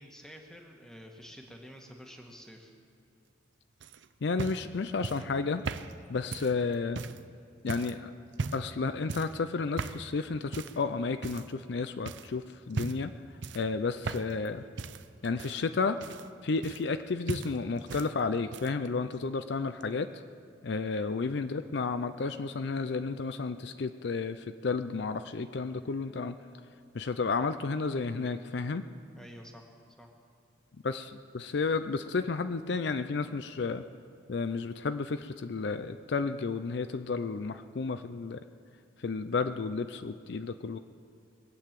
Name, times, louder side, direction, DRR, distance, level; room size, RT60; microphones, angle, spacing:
voice 1, 0.0-2.7 20.9-21.1 25.7-26.2 29.2-29.7 30.0-30.1, equal, 5° left, 1 dB, 1.4 m, -50 dB
sound 1, 3.8-7.2 7.7-8.0 8.3-8.7 9.1-9.4 9.8-10.1 10.5-10.8 11.2-11.7 12.1-12.3 12.7-13.1 13.4-14.5 14.8-17.0 17.3-18.1 18.4-18.9 19.8-19.9, right 4 dB, 70° right, 0.6 m, -38 dB
voice 2, 4.2-5.6 6.1-7.0 7.6-8.1 8.5-13.1 13.5-14.6 15.2-16.0 16.4-20.2 20.6-26.4 26.9-28.8 30.8-33.8 34.3-38.4 39.0-40.8, left 4 dB, 60° left, 10 dB, 0.5 m, -32 dB
21.5 x 8.8 x 7.5 m, 2.3 s
head